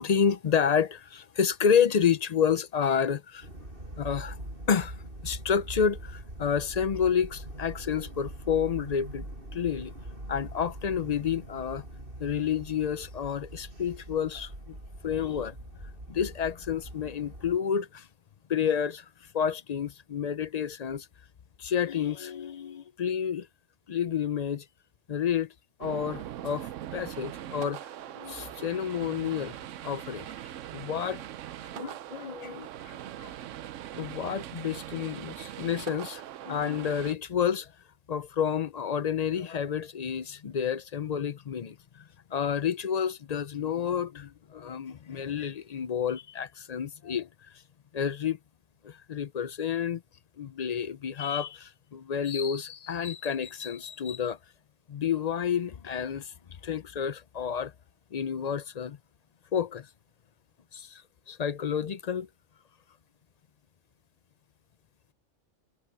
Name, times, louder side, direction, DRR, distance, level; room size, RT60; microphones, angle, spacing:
voice 1, 0.0-3.5 4.0-4.4 4.7-5.0 5.2-9.3 9.5-9.9 10.3-11.8 12.2-14.7 15.0-15.6 16.1-18.1 18.5-19.0 19.3-21.1 21.6-23.5 23.9-24.6 25.1-25.5 25.8-27.8 28.1-29.5 29.8-30.3 30.7-31.2 31.7-33.3 34.0-37.7 38.1-42.0 42.3-47.3 47.9-48.4 48.8-50.0 50.4-54.4 54.9-56.3 56.6-57.7 58.1-59.0 59.5-59.9 60.7-61.0 61.3-62.3, left 7 dB, 45° left, 0.5 m, -29 dB
sound 1, 3.4-17.6, right 1 dB, 45° right, 8.2 m, -43 dB
sound 2, 25.8-37.1, right 12 dB, 85° right, 1.0 m, -41 dB
omnidirectional pair, 1.3 m